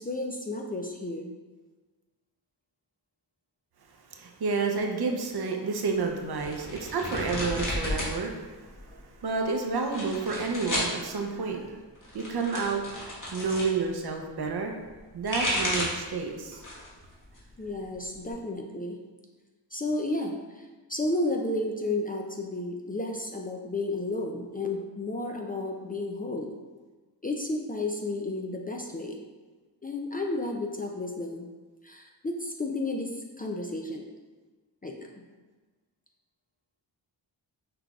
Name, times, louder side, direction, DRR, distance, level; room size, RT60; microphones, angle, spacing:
voice 1, 0.0-1.3 14.0-14.2 17.6-19.0 19.7-26.5 27.2-29.2 29.8-31.5 31.8-34.1 34.8-35.1, left 2 dB, 20° left, 1 dB, 0.4 m, -32 dB
voice 2, 4.1-11.7 12.1-12.8 13.3-14.7 15.1-16.6, right 4 dB, 60° right, 2 dB, 0.7 m, -30 dB
sound 1, 6.4-8.1 8.5-9.1 9.8-10.9 12.0-13.7 15.0-16.1 16.5-17.0 17.3-18.3, left 1 dB, 45° left, 1.4 m, -32 dB
5.9 x 3.3 x 2.4 m, 1.3 s
cardioid pair, 70°, 44 cm